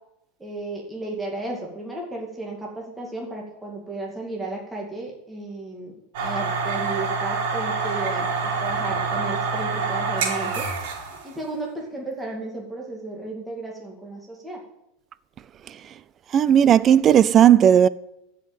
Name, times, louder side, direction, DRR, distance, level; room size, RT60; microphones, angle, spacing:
voice 1, 0.4-10.7 11.2-14.6, right 2 dB, 5° right, 2.3 m, -34 dB
sound 1, 6.1-11.3, right 4 dB, 70° right, 3.3 m, -26 dB
voice 2, 16.3-17.9, right 9 dB, 30° right, 0.5 m, -15 dB
14.5 x 5.7 x 8.6 m
supercardioid pair, 150°, 0 cm